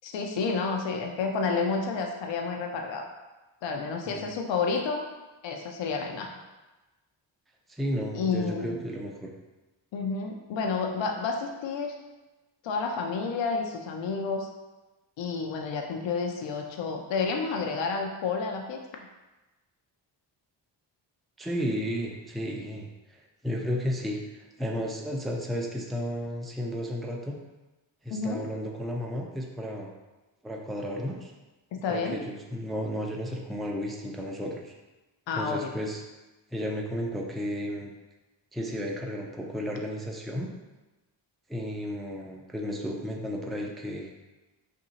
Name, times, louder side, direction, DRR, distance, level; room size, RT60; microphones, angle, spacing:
voice 1, 0.0-3.0 3.6-5.1 5.4-6.3 8.1-8.8 9.9-11.9 12.6-14.5 15.2-18.8 28.1-28.4 31.8-32.2 35.3-35.7, left 4 dB, 70° left, 2 dB, 0.6 m, -30 dB
voice 2, 7.7-9.3 21.4-24.2 24.6-27.4 28.0-29.9 30.4-31.3 31.9-34.7 35.4-36.0 36.5-37.9 38.5-40.5 41.5-44.1, equal, ahead, 0 dB, 0.4 m, -33 dB
2.7 x 2.7 x 3.9 m, 1.1 s
cardioid pair, 60°, 46 cm